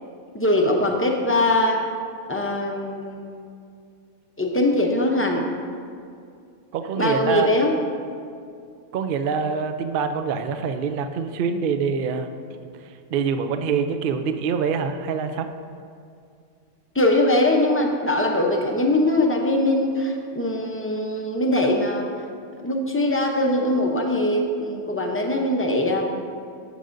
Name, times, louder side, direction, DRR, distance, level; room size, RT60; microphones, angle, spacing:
voice 1, 0.3-1.8 2.3-3.5 4.4-5.4 7.0-7.7 16.9-22.1 22.6-26.1, left 1 dB, 15° left, 1 dB, 0.4 m, -22 dB
voice 2, 6.7-7.5 8.9-12.3 12.8-15.5, right 6 dB, 65° right, 8 dB, 0.5 m, -25 dB
12.0 x 7.6 x 2.6 m, 2.3 s
omnidirectional pair, 1.4 m